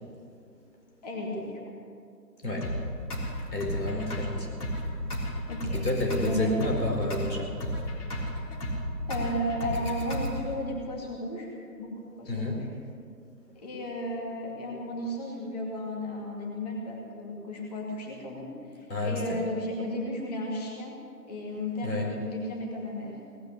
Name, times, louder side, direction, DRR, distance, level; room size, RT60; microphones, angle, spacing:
voice 1, 1.0-1.6 5.5-5.8 6.1-6.5 9.1-11.5 11.8-12.7 13.6-20.9 21.3-23.1, left 1 dB, 25° left, -2 dB, 2.4 m, -34 dB
sound 1, 2.6-10.6, equal, 60° left, 3.8 m, -33 dB
voice 2, 3.5-4.5 4.9-5.0 5.7-7.5 12.2-12.6 18.9-19.4 21.8-22.1, left 2 dB, 80° left, 0 dB, 4.9 m, -30 dB
18.5 x 9.1 x 8.5 m, 2.3 s
figure-of-eight pair, 160°, 50 cm